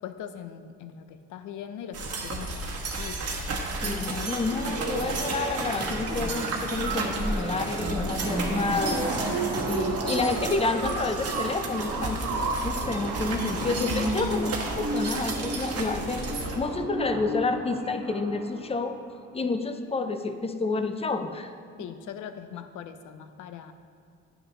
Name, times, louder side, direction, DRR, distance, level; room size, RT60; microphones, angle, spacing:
voice 1, 0.0-3.2 21.8-23.7, left 8 dB, 80° left, 10 dB, 0.6 m, -41 dB
sound 1, 1.9-16.6, right 2 dB, 55° right, 1.3 m, -33 dB
voice 2, 3.8-9.0 9.6-19.0 19.3-21.5, left 3 dB, 20° left, 8 dB, 0.5 m, -29 dB
sound 2, 3.8-9.6, right 1 dB, 15° right, 1.6 m, -36 dB
sound 3, 4.7-18.7, right 2 dB, 70° right, 1.4 m, -33 dB
9.8 x 7.2 x 3.0 m, 2.4 s
cardioid pair, 90°, 30 cm